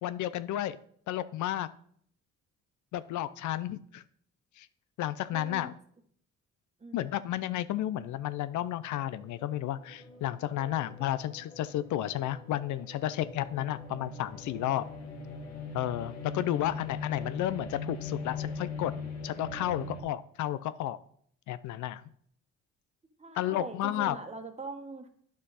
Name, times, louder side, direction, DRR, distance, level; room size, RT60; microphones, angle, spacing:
voice 1, 0.0-0.8 1.1-1.7 2.9-4.0 4.6-4.7 5.0-5.7 6.9-14.9 15.7-18.9 19.2-21.0 21.5-22.0 23.3-24.2, left 13 dB, 75° left, 15 dB, 0.5 m, -32 dB
voice 2, 5.3-5.7 6.8-7.2 23.2-25.1, right 3 dB, 20° right, 5 dB, 1.3 m, -42 dB
sound 1, 8.1-20.0, left 4 dB, 60° left, 2.0 m, -41 dB
9.4 x 6.3 x 4.1 m, 0.63 s
cardioid pair, 90°, 30 cm